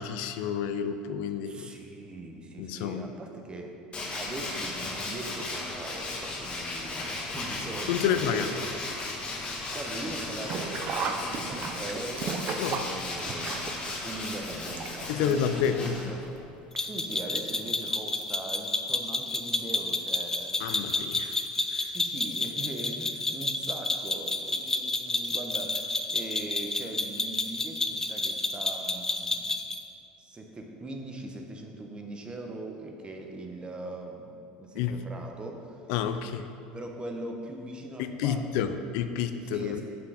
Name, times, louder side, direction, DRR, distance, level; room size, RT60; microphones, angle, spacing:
voice 1, 0.0-1.7 2.6-3.1 7.9-8.5 12.6-12.9 15.1-16.1 20.6-21.4 21.7-21.9 34.7-35.0 35.9-36.5 38.0-39.8, left 8 dB, 70° left, 9 dB, 0.4 m, -29 dB
voice 2, 1.4-8.6 9.7-12.4 12.8-13.6 14.0-16.2 16.8-20.8 21.9-29.6 30.2-34.3 34.6-35.8 36.7-38.8 39.4-39.8, right 2 dB, 25° right, 3 dB, 1.0 m, -41 dB
Tools, 3.9-16.4, left 2 dB, 30° left, 1.4 m, -36 dB
Sink (filling or washing), 10.4-15.3 15.6-15.7 16.7-16.8 17.2-17.3, right 5 dB, 45° right, 0.6 m, -34 dB
sound 1, 16.8-29.8, left 2 dB, 10° left, 0.5 m, -30 dB
6.2 x 5.8 x 4.9 m, 2.6 s
supercardioid pair, 90°, 4 cm